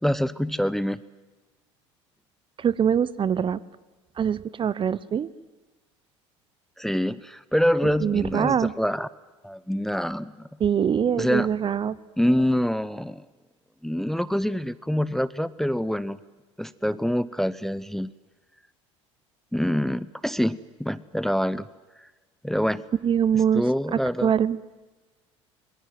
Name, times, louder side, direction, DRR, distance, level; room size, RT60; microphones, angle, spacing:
voice 1, 0.0-1.0 6.8-9.1 9.4-10.4 11.2-11.5 12.2-13.3 13.8-16.2 16.6-18.1 19.5-21.6 22.0-22.1 22.4-22.8 23.5-24.3, equal, ahead, 17 dB, 0.8 m, -25 dB
voice 2, 2.6-3.6 4.2-5.3 8.0-8.7 10.6-12.0 23.0-23.6 24.2-24.6, right 8 dB, 30° right, 19 dB, 0.9 m, -23 dB
26.5 x 21.5 x 9.4 m, 1.2 s
figure-of-eight pair, 65°, 16 cm